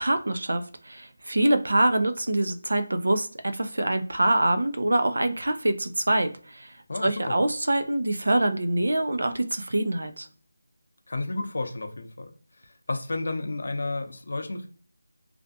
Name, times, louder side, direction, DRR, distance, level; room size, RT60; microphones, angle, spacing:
voice 1, 0.0-6.7 7.0-10.3, right 1 dB, 80° right, 9 dB, 0.4 m, -25 dB
voice 2, 6.9-7.4 11.1-12.3 12.6-14.7, left 2 dB, 55° left, 5 dB, 0.6 m, -32 dB
2.4 x 2.2 x 2.6 m, 0.43 s
figure-of-eight pair, 175°, 0 cm